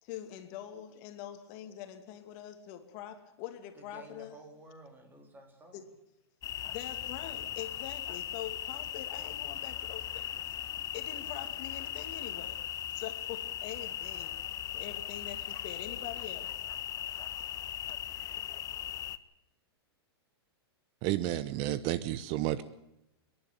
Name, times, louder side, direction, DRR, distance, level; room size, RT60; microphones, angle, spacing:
voice 1, 0.0-4.4 5.7-5.8 6.7-10.4 10.9-14.4 14.7-16.6, left 11 dB, 45° left, 7 dB, 2.5 m, -44 dB
voice 2, 3.7-5.9, right 2 dB, 15° right, 5 dB, 3.8 m, -52 dB
sound 1, 6.4-19.2, left 11 dB, 25° left, 0.9 m, -38 dB
voice 3, 21.0-22.6, right 14 dB, 40° right, 15 dB, 0.9 m, -31 dB
28.0 x 11.0 x 9.0 m, 0.85 s
hypercardioid pair, 130°, 13 cm